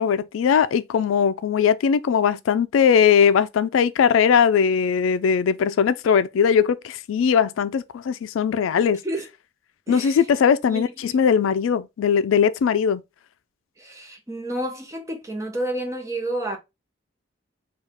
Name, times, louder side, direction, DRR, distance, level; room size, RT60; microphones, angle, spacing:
voice 1, 0.0-9.0 9.9-13.0, left 7 dB, 90° left, 0.3 m, -20 dB
voice 2, 9.9-10.2 10.7-11.1 13.8-16.6, right 1 dB, 15° right, 0.8 m, -30 dB
4.8 x 2.4 x 3.3 m
head